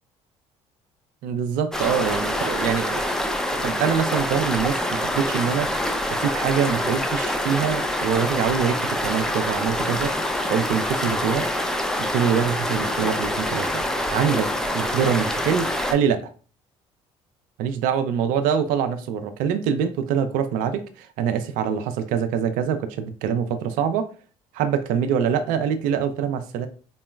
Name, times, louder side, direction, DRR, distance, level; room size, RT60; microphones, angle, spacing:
voice 1, 1.2-3.1 3.6-5.7 6.1-10.2 10.5-11.5 12.1-16.3 17.6-24.1 24.5-26.7, right 7 dB, 75° right, 9 dB, 0.4 m, -24 dB
sound 1, 1.7-15.9, left 1 dB, 5° left, 0.5 m, -26 dB
3.8 x 2.0 x 2.3 m, 0.38 s
hypercardioid pair, 65°, 14 cm